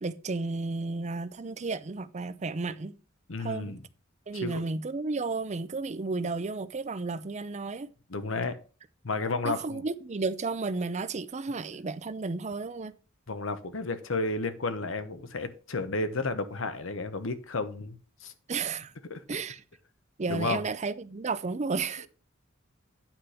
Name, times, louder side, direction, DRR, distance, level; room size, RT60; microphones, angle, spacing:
voice 1, 0.0-3.0 3.4-3.8 4.3-7.9 9.4-12.9 18.5-18.9 19.3-19.6 20.2-22.1, right 3 dB, 35° right, 0.5 m, -33 dB
voice 2, 3.3-3.8 4.3-4.6 8.1-8.6 9.0-9.8 13.3-18.3 19.1-19.2 20.3-20.6, left 3 dB, 65° left, 1.0 m, -32 dB
9.0 x 5.1 x 5.7 m
head